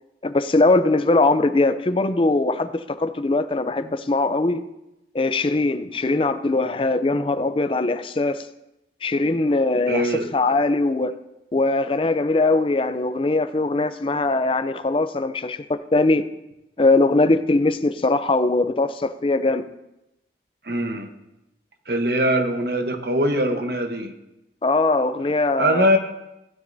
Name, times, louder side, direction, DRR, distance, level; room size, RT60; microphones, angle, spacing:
voice 1, 0.2-4.6 5.1-8.5 9.0-11.1 11.5-16.3 16.8-19.7 24.6-25.9, left 2 dB, 30° left, 11 dB, 0.4 m, -21 dB
voice 2, 9.9-10.3 20.6-21.1 21.9-24.1 25.6-26.0, equal, 60° right, 5 dB, 1.0 m, -22 dB
15.5 x 9.7 x 2.7 m, 0.92 s
head